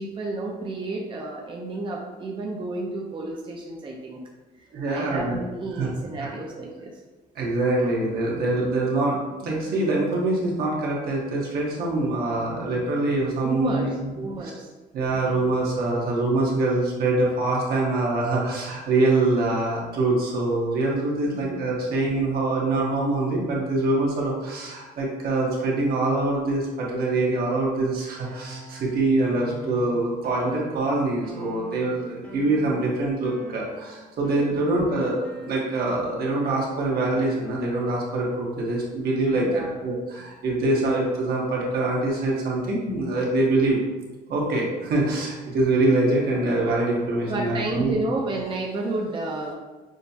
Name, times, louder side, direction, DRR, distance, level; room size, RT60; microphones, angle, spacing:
voice 1, 0.0-4.2 4.9-7.0 13.4-13.9 14.2-14.7 21.3-21.6 21.9-22.0 34.5-34.7 39.3-39.8 47.3-49.5, right 2 dB, 30° right, -2 dB, 0.6 m, -31 dB
voice 2, 4.7-5.4 5.8-5.9 6.2-6.3 7.3-14.1 14.9-43.8 44.3-48.0, right 2 dB, 65° right, -3 dB, 1.2 m, -24 dB
sound 1, 28.2-36.1, equal, 5° left, 0.8 m, -44 dB
6.3 x 2.3 x 2.7 m, 1.2 s
cardioid pair, 110°, 17 cm